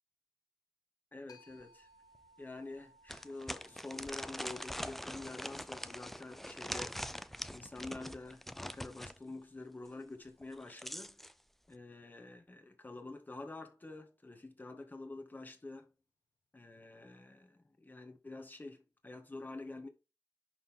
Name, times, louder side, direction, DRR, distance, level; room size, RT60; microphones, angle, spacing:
voice 1, 1.1-1.9 2.4-7.0 7.5-11.2 11.7-15.9 16.5-19.9, left 2 dB, 30° left, 1.9 m, -48 dB
sound 1, 1.3-10.7, equal, 80° left, 1.3 m, -67 dB
sound 2, 1.6-1.7 2.1-2.2 3.1-9.2 10.4-11.3, equal, 5° left, 0.5 m, -43 dB
11.0 x 4.1 x 3.7 m
wide cardioid pair, 80°, 7 cm